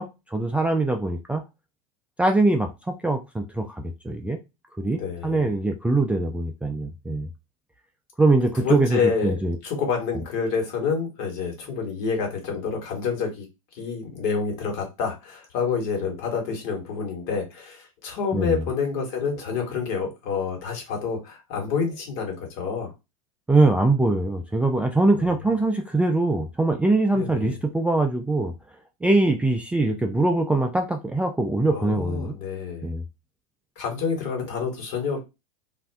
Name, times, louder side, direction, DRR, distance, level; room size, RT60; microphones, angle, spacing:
voice 1, 0.0-1.4 2.2-4.4 4.8-7.3 8.2-9.6 18.3-18.6 23.5-28.5 29.0-32.4 32.8-33.0, right 2 dB, 5° right, 0.3 m, -22 dB
voice 2, 4.8-5.5 8.6-13.5 13.7-22.9 25.1-25.3 27.1-27.6 31.7-32.9 33.8-35.2, left 5 dB, 60° left, 1.4 m, -28 dB
2.5 x 2.1 x 3.4 m
hypercardioid pair, 100°, 19 cm